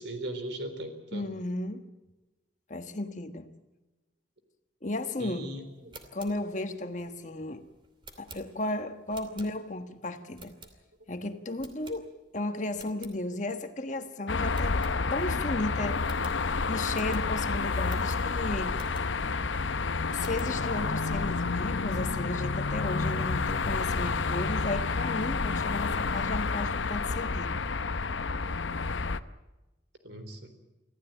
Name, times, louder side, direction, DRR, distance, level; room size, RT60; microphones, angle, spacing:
voice 1, 0.0-1.3 5.2-6.0 6.9-7.3 9.2-9.5 14.0-14.8 18.6-18.8 30.0-30.5, right 1 dB, 70° right, 3.8 m, -42 dB
voice 2, 1.1-1.8 2.7-3.5 4.8-5.5 6.1-7.6 8.2-10.5 11.1-14.8 15.1-16.0 16.7-18.8 20.1-27.6, left 2 dB, 40° left, 1.5 m, -34 dB
sound 1, 5.7-9.9 10.3-11.1 11.6-12.4 12.7-13.2 13.6-13.7 14.0-14.1 14.5-15.4 15.7-15.8 16.0-19.3 19.8-20.6, right 3 dB, 25° right, 2.7 m, -52 dB
sound 2, 14.3-29.2, left 4 dB, 85° left, 0.8 m, -29 dB
26.0 x 15.5 x 9.1 m
head